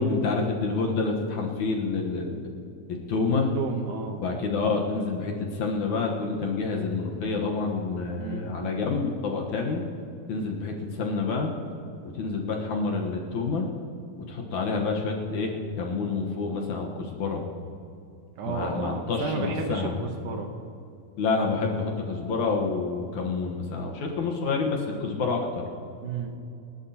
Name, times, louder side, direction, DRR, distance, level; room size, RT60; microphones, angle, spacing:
voice 1, 0.0-2.5 3.1-3.5 4.2-9.8 10.3-11.5 12.1-13.7 14.3-17.4 18.5-19.9 21.2-25.6, left 4 dB, 65° left, 0 dB, 2.3 m, -28 dB
voice 2, 3.5-4.2 8.2-8.5 18.4-20.6 26.0-26.3, right 5 dB, 70° right, 4 dB, 2.2 m, -32 dB
26.5 x 12.5 x 2.9 m, 2.6 s
omnidirectional pair, 4.2 m